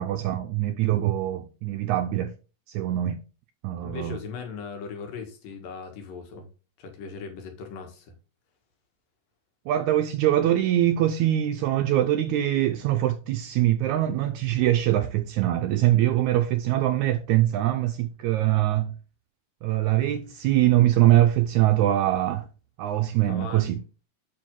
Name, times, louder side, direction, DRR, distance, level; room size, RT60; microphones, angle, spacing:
voice 1, 0.0-2.3 2.7-3.2 3.6-4.2 9.7-18.9 19.6-22.5 22.8-23.8, right 13 dB, 85° right, 1.7 m, -23 dB
voice 2, 3.8-6.5 6.8-8.1 23.3-23.7, left 5 dB, 80° left, 3.4 m, -38 dB
7.7 x 6.3 x 3.7 m
omnidirectional pair, 4.0 m